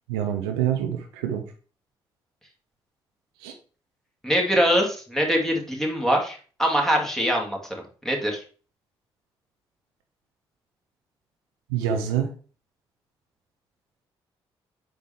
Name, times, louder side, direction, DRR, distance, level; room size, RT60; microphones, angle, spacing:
voice 1, 0.1-1.4 3.4-3.5 11.7-12.3, right 9 dB, 70° right, 5 dB, 0.9 m, -26 dB
voice 2, 4.2-7.6 8.0-8.4, equal, 5° left, 0 dB, 2.6 m, -23 dB
7.8 x 5.2 x 3.5 m, 0.38 s
figure-of-eight pair, 40°, 13 cm